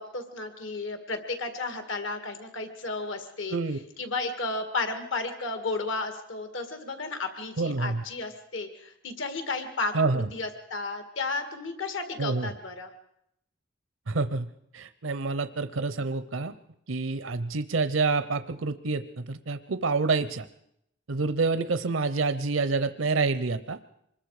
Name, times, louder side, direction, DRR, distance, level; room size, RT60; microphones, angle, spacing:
voice 1, 0.0-12.9, left 3 dB, 80° left, 7 dB, 2.1 m, -33 dB
voice 2, 7.6-8.0 9.9-10.3 12.2-12.5 14.1-14.5 14.7-16.5 16.9-20.5 21.1-23.8, right 3 dB, 85° right, 12 dB, 0.7 m, -27 dB
25.5 x 21.0 x 4.9 m, 0.78 s
head